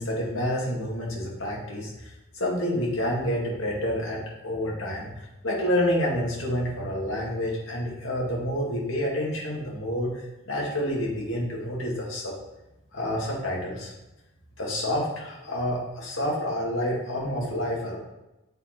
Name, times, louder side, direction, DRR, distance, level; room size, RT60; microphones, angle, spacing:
voice 1, 0.0-10.1 10.5-12.3 12.9-13.9 14.6-18.0, left 1 dB, 70° left, -3 dB, 2.0 m, -28 dB
7.8 x 4.2 x 4.4 m, 0.98 s
head